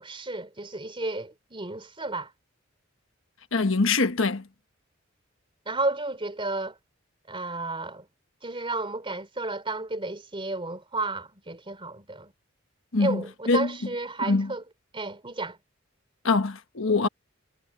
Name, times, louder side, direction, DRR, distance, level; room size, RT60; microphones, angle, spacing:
voice 1, 0.0-2.3 5.7-6.8 7.3-8.1 8.4-12.3 13.0-14.6 14.9-15.6, right 2 dB, 25° right, 3.5 m, -32 dB
voice 2, 3.5-4.4 12.9-13.7 14.2-14.5 16.2-17.1, left 3 dB, 70° left, 1.3 m, -24 dB
head